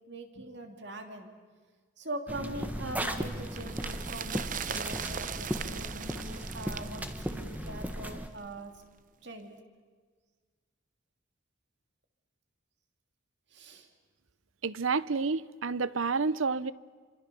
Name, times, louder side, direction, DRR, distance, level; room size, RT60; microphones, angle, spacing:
voice 1, 0.1-1.3 2.0-8.8 9.2-9.5 13.5-13.9, right 1 dB, 55° right, 5 dB, 2.9 m, -42 dB
sound 1, 2.3-8.3, equal, 10° right, 1.4 m, -36 dB
sound 2, 2.7-8.1 8.4-8.5, right 8 dB, 40° right, 0.7 m, -40 dB
voice 2, 14.6-16.7, right 4 dB, 80° right, 18 dB, 0.7 m, -29 dB
29.0 x 25.5 x 7.0 m, 1.5 s
head